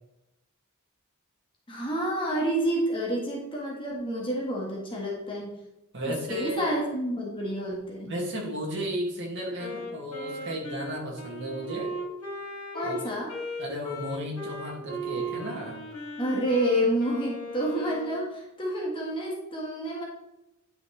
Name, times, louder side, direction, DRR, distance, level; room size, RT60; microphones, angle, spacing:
voice 1, 1.7-5.6 6.3-8.1 12.7-13.3 16.2-20.0, right 1 dB, 25° left, -3 dB, 1.7 m, -29 dB
voice 2, 5.9-6.7 8.1-12.0 12.8-13.0 13.6-15.8, equal, 55° right, -2 dB, 2.4 m, -34 dB
Wind instrument woodwind instrument, 9.6-18.2, right 1 dB, 80° left, 3.3 m, -37 dB
10.0 x 5.7 x 3.3 m, 0.90 s
head